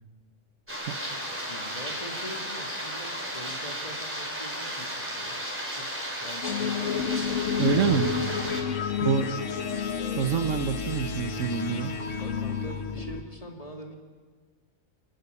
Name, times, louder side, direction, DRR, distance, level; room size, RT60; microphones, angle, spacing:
sound 1, 0.7-8.6, equal, 10° right, 4.2 m, -34 dB
voice 1, 1.1-5.4 5.7-7.8 12.2-14.0, equal, 25° left, 2 dB, 2.6 m, -43 dB
sound 2, 6.4-13.2, left 6 dB, 65° left, 1.6 m, -30 dB
voice 2, 7.6-8.2 9.0-9.3 10.2-12.0, right 7 dB, 70° right, 11 dB, 1.3 m, -26 dB
28.0 x 11.0 x 9.6 m, 1.5 s
omnidirectional pair, 1.4 m